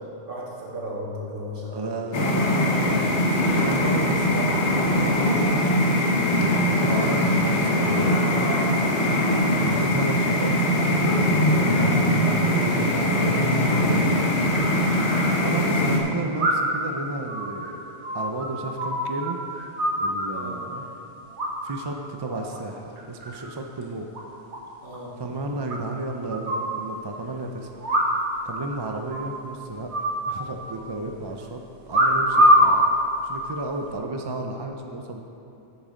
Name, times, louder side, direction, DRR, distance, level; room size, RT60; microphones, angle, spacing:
voice 1, 0.0-2.0 20.3-20.6 24.8-25.2, equal, 55° right, -5 dB, 2.1 m, -36 dB
voice 2, 1.7-5.5 6.3-8.2 9.6-10.6 11.5-14.3 15.4-17.8 18.1-19.4 20.0-20.8 21.6-24.1 25.2-27.7 28.4-29.9 30.3-31.6 31.9-32.9 33.2-35.2, right 2 dB, 30° right, 3 dB, 0.5 m, -33 dB
sound 1, 2.1-16.0, left 1 dB, 80° left, 1.4 m, -21 dB
sound 2, 16.4-16.8 17.3-19.3 19.5-20.6 21.4-21.9 22.2-22.6 23.0-23.5 23.8-23.9 24.1-24.2 24.5-24.6 24.9-25.0 25.7-26.7 27.8-28.4 28.7-28.8 29.1-29.4 29.9-30.8 31.9-32.8 33.5-33.9, equal, 85° right, 1.6 m, -23 dB
9.7 x 7.4 x 5.1 m, 2.9 s
omnidirectional pair, 1.1 m